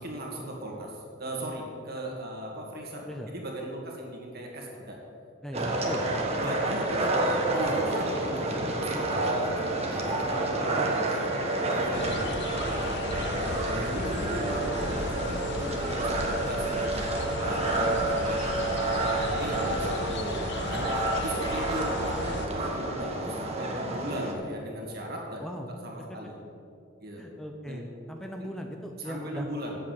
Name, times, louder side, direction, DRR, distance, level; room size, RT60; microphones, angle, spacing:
voice 1, 0.0-5.0 5.5-5.7 6.4-11.3 11.6-12.9 13.3-17.1 17.4-25.4 25.8-26.4 27.0-27.2 27.7-27.8 29.0-29.8, equal, 50° right, -1 dB, 2.1 m, -37 dB
voice 2, 5.4-6.2 10.5-10.8 13.7-14.1 17.8-18.1 25.4-25.7 27.2-29.6, equal, 5° left, 2 dB, 0.6 m, -39 dB
sound 1, 5.5-24.3, right 2 dB, 30° right, 1.3 m, -29 dB
sound 2, 11.9-22.5, left 3 dB, 60° left, 0.7 m, -36 dB
8.5 x 7.5 x 7.3 m, 2.6 s
head